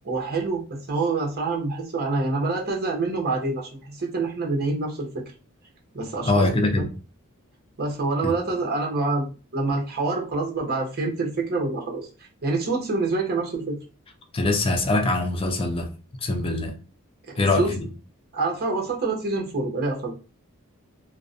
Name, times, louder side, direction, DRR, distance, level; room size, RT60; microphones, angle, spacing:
voice 1, 0.0-5.2 5.9-6.6 7.8-12.1 12.4-13.8 17.4-17.7 18.3-20.1, right 3 dB, 45° right, 0.8 m, -26 dB
voice 2, 6.3-6.9 8.2-8.3 14.3-15.9 16.2-16.7 17.4-17.8, left 2 dB, 25° left, 0.4 m, -23 dB
2.4 x 2.1 x 2.5 m
head